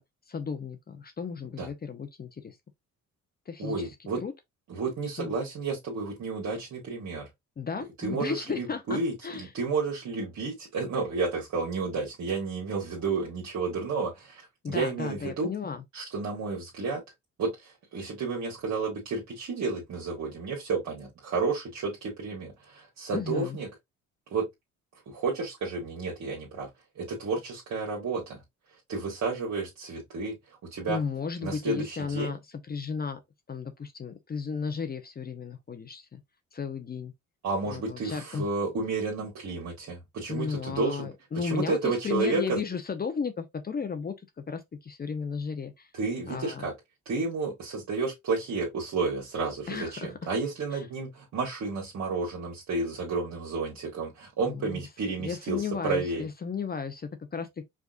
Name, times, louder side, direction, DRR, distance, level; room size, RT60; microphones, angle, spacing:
voice 1, 0.3-2.6 3.5-3.9 4.2-4.3 5.2-5.3 7.6-9.5 14.6-15.8 23.1-23.6 30.9-32.4 32.7-33.2 33.5-36.2 36.5-37.1 37.6-38.5 40.3-44.1 44.5-45.9 46.3-46.7 49.7-50.1 50.7-50.8 54.4-54.8 55.2-57.6, left 6 dB, 30° left, 0.6 m, -34 dB
voice 2, 3.6-4.2 4.7-7.3 8.0-15.5 15.9-17.0 17.4-23.7 24.3-24.5 25.1-26.7 26.9-28.4 28.9-31.0 31.4-32.3 37.4-41.1 41.4-42.6 45.9-46.7 47.0-56.2, right 4 dB, 65° right, 1.4 m, -31 dB
4.9 x 2.4 x 2.4 m
cardioid pair, 90°, 30 cm